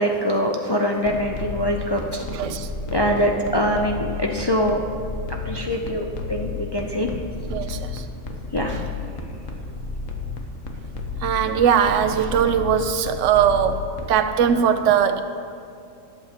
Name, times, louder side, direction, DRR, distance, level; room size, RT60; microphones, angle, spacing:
voice 1, 0.0-2.3 2.9-4.8 5.4-7.1 8.5-8.8, equal, 40° left, 1 dB, 0.3 m, -23 dB
sound 1, 1.0-14.1, left 4 dB, 80° left, 1.3 m, -32 dB
voice 2, 2.3-2.7 7.5-8.0 8.7-8.8 11.2-13.8 14.1-15.2, right 8 dB, 70° right, 9 dB, 0.9 m, -20 dB
19.0 x 7.9 x 2.9 m, 2.4 s
omnidirectional pair, 1.3 m